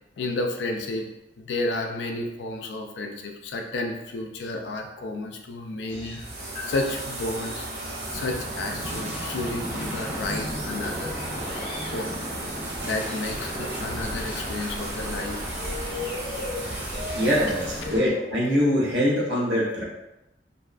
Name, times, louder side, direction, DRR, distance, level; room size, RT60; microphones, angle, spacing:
voice 1, 0.2-1.1 1.4-6.2 6.6-7.7 8.1-11.1 11.9-12.1 12.8-15.5, left 2 dB, 80° left, 3 dB, 0.4 m, -31 dB
sound 1, 5.9-18.1, left 2 dB, 30° left, 0.6 m, -39 dB
sound 2, 6.2-17.9, right 2 dB, 60° right, 0.5 m, -36 dB
sound 3, 8.1-18.0, equal, 10° right, 0.5 m, -36 dB
voice 2, 17.1-19.8, equal, 85° right, -6 dB, 0.9 m, -23 dB
2.6 x 2.3 x 2.3 m, 0.94 s
head